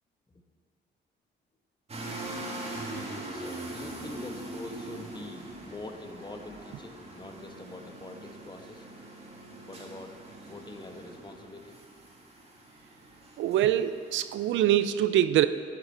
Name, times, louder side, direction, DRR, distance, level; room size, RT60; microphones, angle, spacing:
sound 1, 1.9-14.6, right 1 dB, 30° right, 1.9 m, -42 dB
voice 1, 3.3-8.9 9.7-10.2 10.4-11.8, left 2 dB, 20° left, 5 dB, 1.1 m, -45 dB
voice 2, 13.4-15.5, right 12 dB, 70° right, 13 dB, 0.4 m, -24 dB
12.0 x 8.1 x 4.3 m, 2.1 s
cardioid pair, 90°, 20 cm